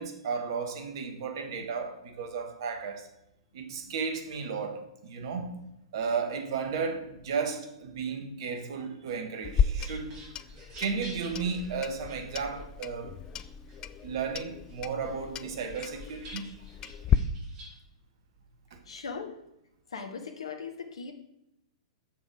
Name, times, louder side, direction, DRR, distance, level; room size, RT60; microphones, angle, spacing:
voice 1, 0.0-3.1 3.5-5.7 5.9-10.2 10.8-13.1 14.0-16.5 18.7-18.8, right 5 dB, 50° right, 1.4 m, -34 dB
sound 1, 9.3-12.9 13.4-14.3 14.7-17.8, right 1 dB, 30° right, 2.6 m, -50 dB
Clock, 9.4-17.2, left 8 dB, 20° left, 0.3 m, -33 dB
voice 2, 18.9-19.4 19.9-21.1, left 5 dB, 65° left, 1.0 m, -39 dB
6.7 x 6.5 x 4.9 m
figure-of-eight pair, 105°, 3 cm